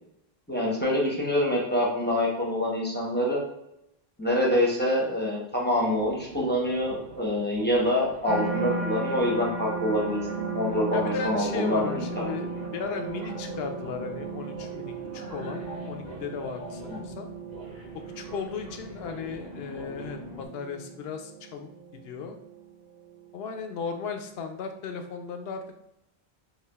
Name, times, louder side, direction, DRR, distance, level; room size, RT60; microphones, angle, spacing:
voice 1, 0.5-3.4 4.2-11.9 12.2-12.3 16.9-17.0, left 1 dB, 10° left, -4 dB, 0.7 m, -26 dB
sound 1, 5.7-20.5, equal, 80° right, 1.9 m, -43 dB
sound 2, 8.2-23.4 24.0-24.4, right 4 dB, 45° right, 0.6 m, -36 dB
voice 2, 10.9-17.3 17.9-22.4 23.3-25.8, left 6 dB, 75° left, 5 dB, 0.8 m, -36 dB
4.9 x 2.4 x 2.3 m, 0.82 s
omnidirectional pair, 1.0 m